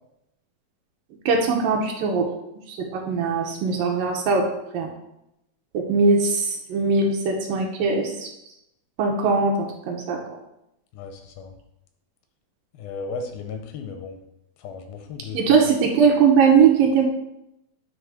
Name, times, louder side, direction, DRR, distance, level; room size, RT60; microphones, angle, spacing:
voice 1, 1.3-2.3 2.7-4.4 4.7-4.9 5.7-8.3 9.0-10.2 15.3-17.1, right 5 dB, 75° right, 1 dB, 2.3 m, -20 dB
voice 2, 10.9-11.5 12.8-14.2 14.6-15.4, left 4 dB, 85° left, 6 dB, 2.3 m, -35 dB
9.6 x 3.2 x 4.8 m, 0.85 s
omnidirectional pair, 4.4 m